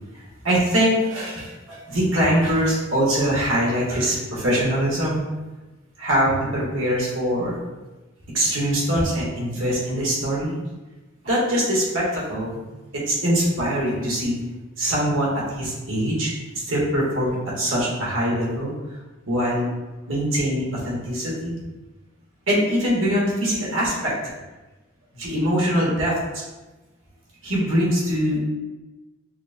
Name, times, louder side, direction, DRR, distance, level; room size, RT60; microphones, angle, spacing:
voice 1, 0.4-5.2 6.0-7.6 8.3-10.6 11.2-12.6 12.9-14.4 14.8-18.7 19.3-19.7 20.1-21.6 22.5-24.1 25.1-26.4 27.4-28.4, equal, 80° right, -5 dB, 1.4 m, -23 dB
5.7 x 2.2 x 2.7 m, 1.1 s
head